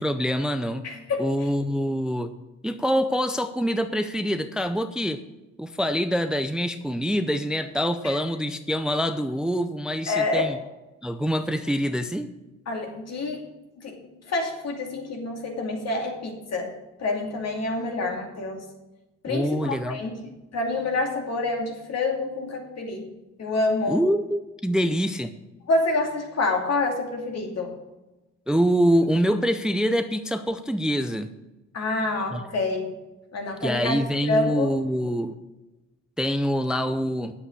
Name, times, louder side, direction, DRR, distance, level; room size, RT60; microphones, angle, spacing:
voice 1, 0.0-0.9 1.2-2.3 2.6-5.2 5.6-10.6 11.0-12.3 19.3-20.0 23.9-25.3 28.5-31.3 32.3-32.4 33.6-35.3 36.2-37.3, equal, 5° right, 10 dB, 0.5 m, -25 dB
voice 2, 0.8-1.5 8.0-8.2 10.1-10.5 12.7-13.4 13.8-13.9 14.3-16.7 17.0-18.6 19.2-20.2 20.5-23.0 23.4-24.0 25.7-27.7 31.7-32.9 33.3-34.7, left 2 dB, 60° left, 2 dB, 2.5 m, -27 dB
8.8 x 7.5 x 6.6 m, 1.1 s
cardioid pair, 90°, 30 cm